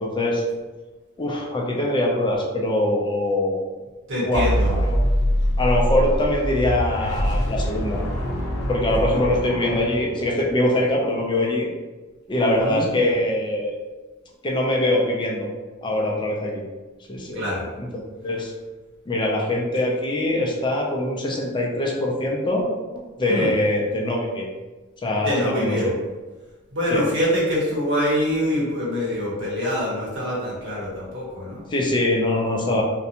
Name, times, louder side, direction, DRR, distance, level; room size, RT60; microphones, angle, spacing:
voice 1, 0.0-0.4 1.2-3.6 4.2-5.0 5.6-8.0 8.7-11.7 12.3-13.8 14.4-15.5 15.8-16.6 17.1-17.4 17.8-17.9 18.2-18.5 19.1-22.6 23.2-24.5 25.0-25.9 26.9-27.0 31.7-32.8, left 1 dB, 20° left, -1 dB, 0.4 m, -23 dB
voice 2, 4.1-4.7 9.1-9.2 12.4-12.9 17.3-17.7 23.3-23.5 25.2-25.9 26.7-31.6, equal, 60° right, -6 dB, 1.0 m, -25 dB
sound 1, 4.3-10.5, equal, 80° left, 0.5 m, -24 dB
2.5 x 2.2 x 2.8 m, 1.2 s
head